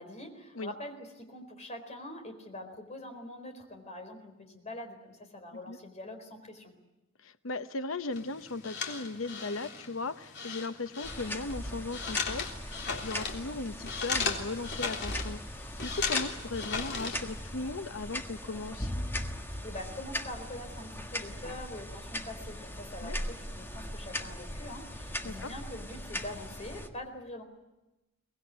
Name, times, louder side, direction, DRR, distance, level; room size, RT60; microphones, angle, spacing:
voice 1, 0.0-6.7 19.6-27.4, left 1 dB, 35° left, 5 dB, 4.3 m, -44 dB
voice 2, 7.2-18.9 23.0-23.2 25.2-25.5, left 3 dB, 85° left, 11 dB, 1.0 m, -37 dB
sound 1, 8.1-17.4, left 5 dB, 60° left, 3.4 m, -37 dB
sound 2, 11.0-26.9, left 1 dB, 10° left, 1.6 m, -39 dB
24.0 x 19.5 x 9.3 m, 1.0 s
head